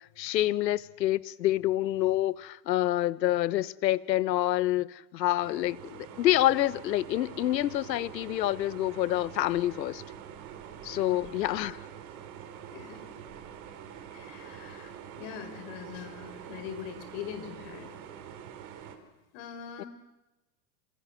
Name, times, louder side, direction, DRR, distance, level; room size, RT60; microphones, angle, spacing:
voice 1, 0.2-10.0 10.8-11.8 19.8-19.9, left 14 dB, 80° left, 1.4 m, -27 dB
sound 1, 5.4-19.0, right 9 dB, 40° right, 4.7 m, -45 dB
voice 2, 11.1-11.7 12.7-13.0 14.1-17.9 19.3-19.9, left 9 dB, 45° left, 5.7 m, -43 dB
27.5 x 27.0 x 7.8 m
supercardioid pair, 145°, 49 cm